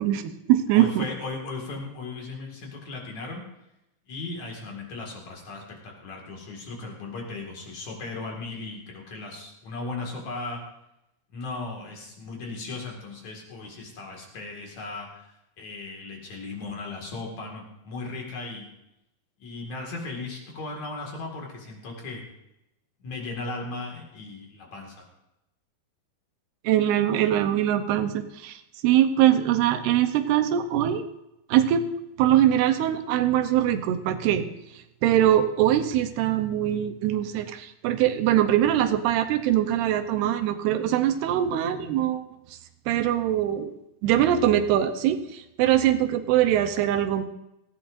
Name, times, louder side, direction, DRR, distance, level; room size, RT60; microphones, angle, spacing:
voice 1, 0.0-1.0 26.6-31.1 31.5-31.9 32.2-34.5 35.0-42.2 42.9-43.7 44.0-47.2, right 11 dB, 85° right, 8 dB, 2.9 m, -22 dB
voice 2, 0.7-3.4 4.1-10.6 11.3-15.3 15.6-18.7 19.4-22.2 23.0-25.0, left 3 dB, 50° left, 0 dB, 3.0 m, -37 dB
17.5 x 15.0 x 2.6 m, 0.89 s
omnidirectional pair, 4.5 m